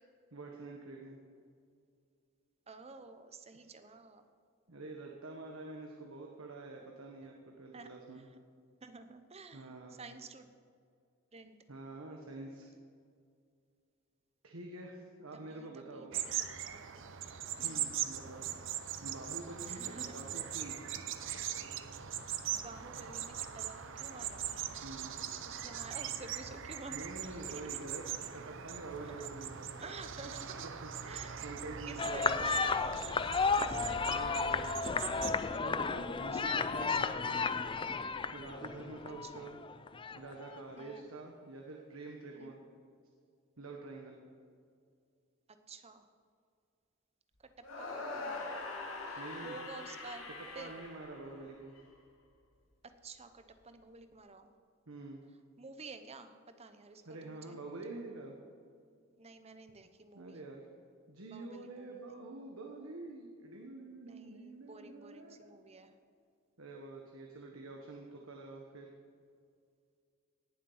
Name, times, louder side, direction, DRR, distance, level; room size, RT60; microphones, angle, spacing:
voice 1, 0.3-1.2 4.7-8.2 9.5-10.0 11.7-12.7 14.4-16.2 17.6-18.5 19.0-21.0 24.8-25.1 26.9-28.0 28.3-29.7 30.6-32.4 33.7-34.9 35.6-37.4 37.9-38.0 38.3-39.6 40.1-42.6 43.6-44.2 49.2-49.6 50.3-51.7 54.9-55.2 57.1-58.4 60.1-60.7 61.1-65.6 66.6-68.9, right 2 dB, 80° right, 1 dB, 1.3 m, -47 dB
voice 2, 2.7-4.3 7.7-7.9 8.2-8.3 8.8-10.5 11.3-11.6 15.3-17.0 17.6-17.9 19.7-20.2 22.5-24.5 25.5-27.1 27.5-27.7 29.1-29.3 29.8-31.4 31.9-32.9 33.6-35.4 36.3-37.4 39.2-39.5 40.8-41.1 42.3-42.6 45.7-46.1 47.4-48.6 49.0-50.7 53.0-54.5 55.6-57.6 59.2-60.4 61.3-61.9 64.0-65.9, right 3 dB, 30° right, 9 dB, 0.9 m, -50 dB
sound 1, 16.1-35.4, right 9 dB, 65° right, 0.8 m, -41 dB
sound 2, 32.0-40.8, left 4 dB, 25° left, 0.4 m, -33 dB
sound 3, 47.6-51.8, left 3 dB, 70° left, 2.6 m, -43 dB
18.5 x 7.4 x 5.6 m, 2.3 s
head